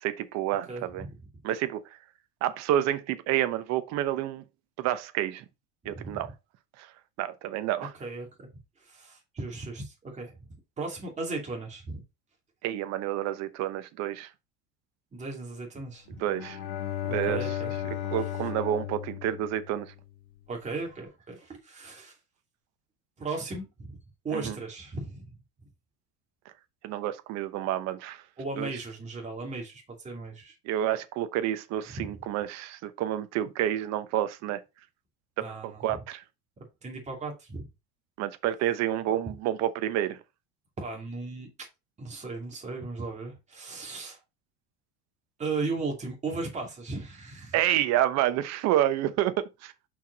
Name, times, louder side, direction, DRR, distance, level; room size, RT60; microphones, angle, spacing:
voice 1, 0.0-1.0 1.4-1.8 2.4-4.4 4.8-5.4 5.8-6.3 6.8-6.9 7.2-7.9 12.6-14.3 16.2-16.6 17.0-17.4 17.8-19.9 24.3-24.6 26.8-28.2 28.6-28.7 30.6-34.6 35.6-36.2 38.2-40.2 47.5-49.9, right 12 dB, 55° right, 0.9 m, -29 dB
voice 2, 0.7-1.2 5.9-6.2 8.0-8.5 8.8-10.4 10.8-12.0 15.1-16.1 17.1-17.7 20.5-22.2 23.2-24.0 24.2-25.4 28.4-30.6 31.9-32.2 35.4-36.0 36.8-37.7 40.8-41.7 42.0-44.2 45.4-47.6, right 3 dB, 20° right, 2.8 m, -36 dB
Bowed string instrument, 16.2-20.2, left 11 dB, 80° left, 1.5 m, -35 dB
5.7 x 4.8 x 4.0 m
supercardioid pair, 130°, 32 cm